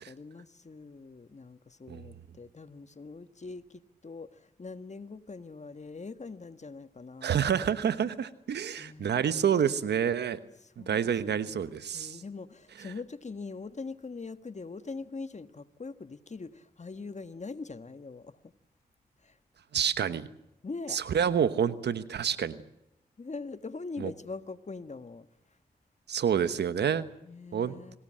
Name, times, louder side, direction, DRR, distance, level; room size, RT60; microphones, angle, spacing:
voice 1, 0.0-7.4 8.8-9.5 10.5-18.5 19.2-19.4 20.6-21.0 23.2-25.3 27.2-28.0, left 4 dB, 45° left, 12 dB, 1.5 m, -43 dB
voice 2, 7.2-10.4 10.8-12.2 19.7-20.3 20.9-22.6 24.0-24.1 26.1-27.0 27.5-28.0, right 8 dB, 85° right, 13 dB, 1.2 m, -28 dB
25.5 x 19.0 x 7.6 m, 0.87 s
cardioid pair, 45°, 17 cm